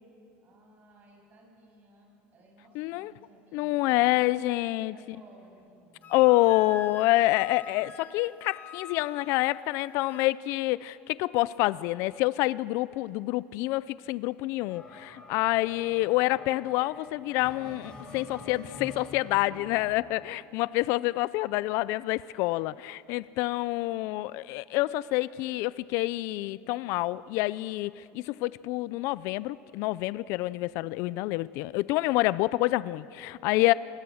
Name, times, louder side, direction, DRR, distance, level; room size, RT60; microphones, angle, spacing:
voice 1, 0.4-6.2 33.5-33.8, right 2 dB, 40° right, -2 dB, 7.7 m, -57 dB
voice 2, 2.8-3.1 3.5-4.9 6.1-33.7, left 18 dB, 70° left, 19 dB, 0.4 m, -27 dB
Wind instrument woodwind instrument, 6.0-10.3, left 5 dB, 40° left, 1.4 m, -46 dB
sound 1, 14.7-19.9, left 2 dB, 20° left, 5.8 m, -47 dB
27.0 x 20.5 x 6.4 m, 2.6 s
supercardioid pair, 125°, 5 cm